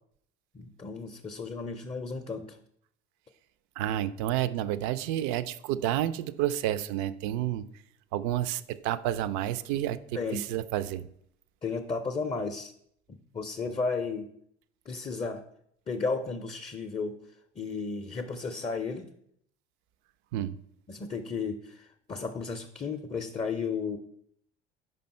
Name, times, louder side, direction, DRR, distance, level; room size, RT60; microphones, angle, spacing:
voice 1, 0.5-2.6 9.7-9.8 10.1-10.5 11.6-12.7 13.1-14.3 14.9-15.4 15.9-17.2 17.6-19.1 20.9-24.0, left 4 dB, 20° left, 4 dB, 0.5 m, -34 dB
voice 2, 3.8-7.7 8.1-11.1 20.3-20.6, right 12 dB, 60° right, 15 dB, 0.5 m, -30 dB
5.4 x 5.3 x 4.3 m, 0.70 s
hypercardioid pair, 65°, 35 cm